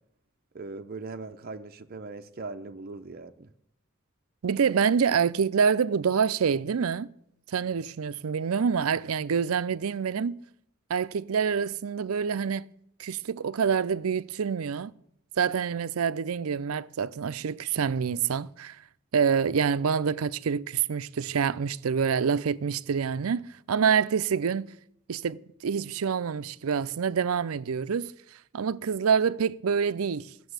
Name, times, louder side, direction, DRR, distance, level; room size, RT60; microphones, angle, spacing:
voice 1, 0.5-3.5, right 3 dB, 45° right, 0.7 m, -40 dB
voice 2, 4.4-7.1 7.5-10.4 10.9-12.7 13.0-14.9 15.4-18.8 19.1-24.7 25.1-28.1 28.5-30.3, right 6 dB, 85° right, 0.5 m, -26 dB
13.5 x 6.9 x 8.0 m
head